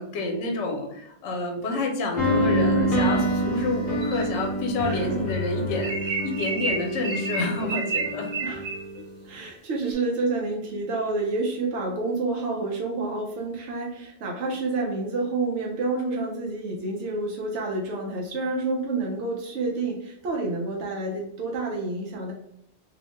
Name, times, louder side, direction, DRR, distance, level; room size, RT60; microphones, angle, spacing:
voice 1, 0.0-8.3 9.0-9.1, left 2 dB, 80° left, 2 dB, 0.9 m, -29 dB
sound 1, 2.2-9.1, equal, 55° left, 0.8 m, -27 dB
sound 2, 4.0-4.3 5.8-9.0, right 3 dB, 55° right, 0.5 m, -30 dB
voice 2, 4.8-5.2 8.4-8.6 9.3-22.3, right 3 dB, 80° right, -1 dB, 0.9 m, -29 dB
2.7 x 2.1 x 2.9 m, 0.74 s
omnidirectional pair, 1.2 m